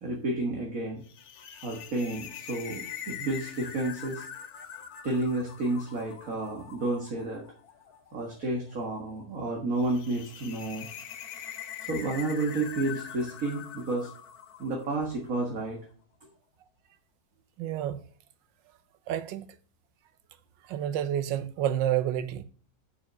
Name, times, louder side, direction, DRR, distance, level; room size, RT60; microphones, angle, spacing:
voice 1, 0.0-1.0 1.4-4.2 5.0-7.4 8.1-10.9 11.8-14.1 14.6-15.8, right 2 dB, 50° right, 2.0 m, -31 dB
sound 1, 1.0-15.4, left 9 dB, 60° left, 1.2 m, -44 dB
voice 2, 17.6-18.0 19.1-19.4 20.6-22.4, right 11 dB, 80° right, 1.4 m, -29 dB
7.1 x 6.3 x 6.4 m
omnidirectional pair, 2.0 m